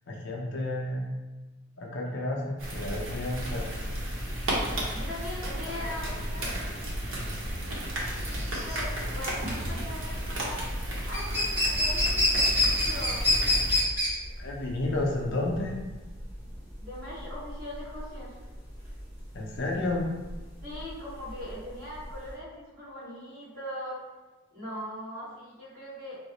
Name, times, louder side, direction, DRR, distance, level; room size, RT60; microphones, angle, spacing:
voice 1, 0.1-1.1 1.8-3.7 14.4-15.7 19.3-20.1, left 2 dB, 60° left, -1 dB, 0.5 m, -31 dB
sound 1, 2.6-13.8, equal, 65° right, 0.8 m, -33 dB
voice 2, 4.9-6.5 8.5-10.6 11.1-13.2 16.8-18.3 20.6-24.0 24.5-26.2, left 1 dB, 45° right, -9 dB, 1.3 m, -40 dB
sound 2, 6.9-22.3, left 1 dB, 10° right, 0.9 m, -29 dB
2.7 x 2.0 x 4.0 m, 1.1 s
head